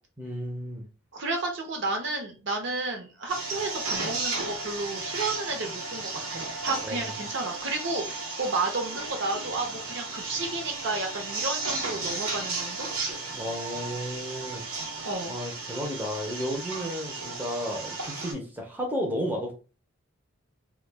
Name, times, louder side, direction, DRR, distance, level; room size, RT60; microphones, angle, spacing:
voice 1, 0.2-0.9 6.8-7.1 13.3-14.7 15.3-19.5, equal, 10° right, -1 dB, 0.5 m, -33 dB
voice 2, 1.1-12.9 15.0-15.4, right 3 dB, 55° right, 3 dB, 0.6 m, -32 dB
sound 1, 3.3-18.3, right 3 dB, 90° right, 0.8 m, -34 dB
2.2 x 2.2 x 3.3 m, 0.34 s
head